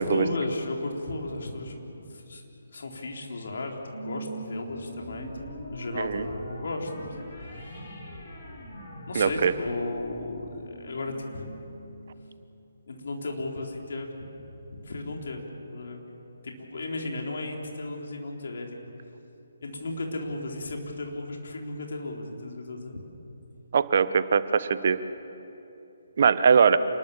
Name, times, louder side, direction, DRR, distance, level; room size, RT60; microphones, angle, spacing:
voice 1, 0.0-3.8 4.0-5.3 5.7-7.3 9.1-11.6 12.9-14.1 14.4-15.4 15.7-16.0 16.4-18.8 19.6-23.0, left 2 dB, 60° left, 1 dB, 3.9 m, -34 dB
sound 1, 3.9-12.6, equal, 35° left, 7.1 m, -42 dB
voice 2, 6.0-6.3 9.1-9.5 23.7-25.0 26.2-26.8, right 6 dB, 50° right, 13 dB, 0.9 m, -21 dB
28.0 x 20.0 x 7.2 m, 3.0 s
figure-of-eight pair, 140°, 0 cm